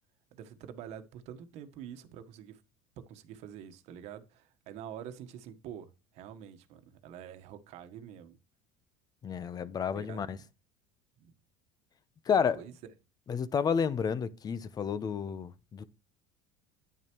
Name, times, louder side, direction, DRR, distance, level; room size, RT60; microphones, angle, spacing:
voice 1, 0.3-2.6 3.0-8.4 9.9-10.5 11.2-11.3 12.5-12.7, right 9 dB, 60° right, 1.3 m, -46 dB
voice 2, 9.2-10.4 12.3-12.6 13.3-15.8, left 7 dB, 30° left, 0.8 m, -30 dB
9.6 x 8.8 x 3.0 m
supercardioid pair, 110°, 13 cm